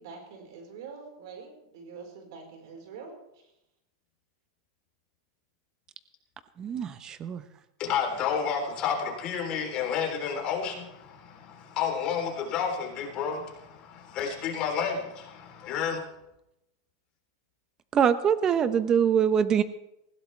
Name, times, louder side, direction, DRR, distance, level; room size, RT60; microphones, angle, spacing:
voice 1, 0.0-3.5, right 5 dB, 70° right, 2 dB, 4.8 m, -45 dB
voice 2, 6.6-7.5 17.9-19.6, right 8 dB, 25° right, 12 dB, 1.0 m, -24 dB
voice 3, 7.8-16.0, left 7 dB, 40° left, 1 dB, 3.6 m, -31 dB
20.0 x 16.0 x 3.4 m, 0.86 s
supercardioid pair, 135°, 2 cm